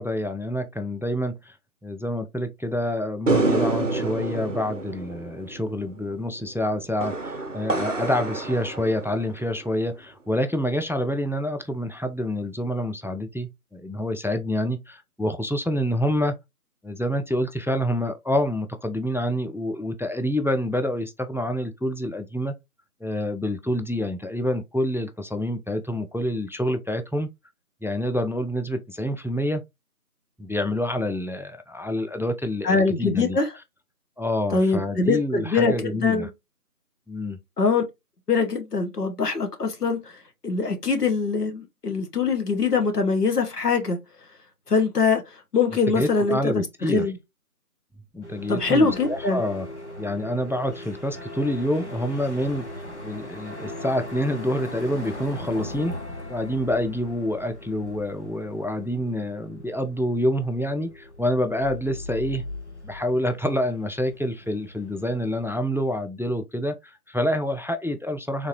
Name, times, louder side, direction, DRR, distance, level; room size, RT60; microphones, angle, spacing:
voice 1, 0.0-1.6 1.8-16.4 16.8-22.5 23.0-27.3 27.8-29.6 30.4-33.4 34.2-36.3 37.1-37.4 45.9-47.1 48.1-49.7 50.0-52.6 53.0-56.0 56.3-62.4 62.8-68.5, left 1 dB, 5° right, 0.3 m, -27 dB
sound 1, 3.3-9.8, right 2 dB, 55° right, 0.7 m, -28 dB
voice 2, 32.6-33.5 34.5-36.3 37.6-37.8 38.3-40.1 40.4-44.0 44.7-45.2 45.5-47.2 48.5-49.4, left 4 dB, 85° left, 1.1 m, -23 dB
sound 2, 48.2-65.6, left 1 dB, 50° left, 0.8 m, -39 dB
3.7 x 2.5 x 2.9 m
figure-of-eight pair, 180°, 46 cm